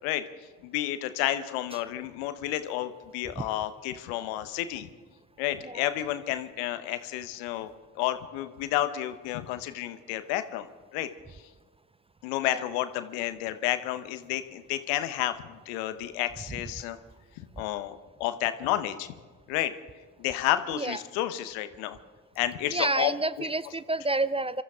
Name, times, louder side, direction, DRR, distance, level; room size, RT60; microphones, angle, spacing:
voice 1, 0.6-4.9 5.4-10.7 10.9-11.1 12.2-17.0 17.4-19.1 19.5-19.7 20.2-22.0 22.4-23.1 23.4-23.5, left 13 dB, 80° left, 11 dB, 1.0 m, -31 dB
voice 2, 22.7-24.6, right 2 dB, 15° right, 17 dB, 0.5 m, -29 dB
25.5 x 13.5 x 3.7 m, 1.4 s
hypercardioid pair, 50°, 40 cm